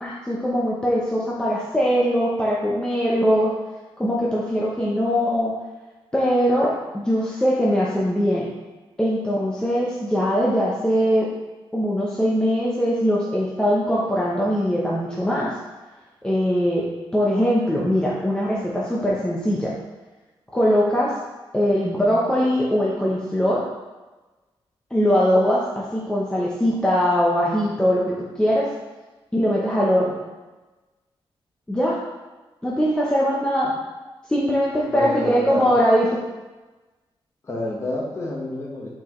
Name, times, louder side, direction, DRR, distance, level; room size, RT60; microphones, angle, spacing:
voice 1, 0.0-3.5 4.0-5.5 6.1-8.5 9.0-11.3 11.7-15.5 16.2-16.9 17.1-19.7 20.5-21.1 21.5-23.6 24.9-28.7 29.3-30.1 31.7-32.0 32.6-33.7 34.3-36.2, equal, 10° left, -5 dB, 0.8 m, -21 dB
voice 2, 34.9-35.8 37.4-39.0, left 1 dB, 30° left, -2 dB, 1.2 m, -29 dB
8.3 x 4.6 x 3.1 m, 1.2 s
wide cardioid pair, 170°, 10 cm